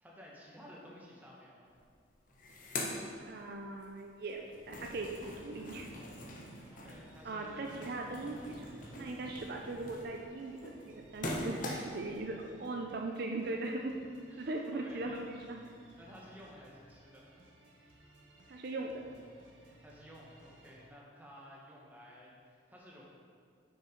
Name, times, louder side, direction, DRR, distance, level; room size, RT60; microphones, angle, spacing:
voice 1, 0.0-1.8 6.4-7.7 12.7-12.8 14.3-15.2 16.0-17.4 19.6-23.1, equal, 10° right, -4 dB, 1.2 m, -54 dB
sound 1, 1.7-1.8 2.1-3.9 4.2-12.1, left 1 dB, 45° left, 0.9 m, -43 dB
voice 2, 3.2-5.9 7.2-8.7 9.0-14.0 14.4-15.6 18.5-19.1, right 2 dB, 55° right, 2 dB, 0.5 m, -39 dB
sound 2, 4.9-20.9, right 1 dB, 85° right, 1.2 m, -61 dB
6.5 x 5.6 x 5.1 m, 2.2 s
head